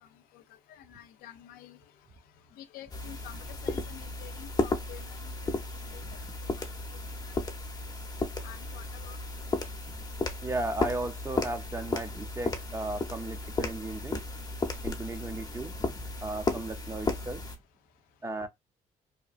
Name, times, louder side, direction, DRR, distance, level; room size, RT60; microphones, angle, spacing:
voice 1, 0.3-1.8 2.5-6.2 6.6-6.7 6.9-7.0 8.4-9.2, left 11 dB, 90° left, 0.4 m, -49 dB
sound 1, 2.9-17.6, left 3 dB, 25° left, 0.7 m, -34 dB
voice 2, 10.4-14.2 14.8-17.4 18.2-18.5, right 2 dB, 20° right, 0.6 m, -36 dB
2.8 x 2.2 x 2.4 m
cardioid pair, 75°, 15 cm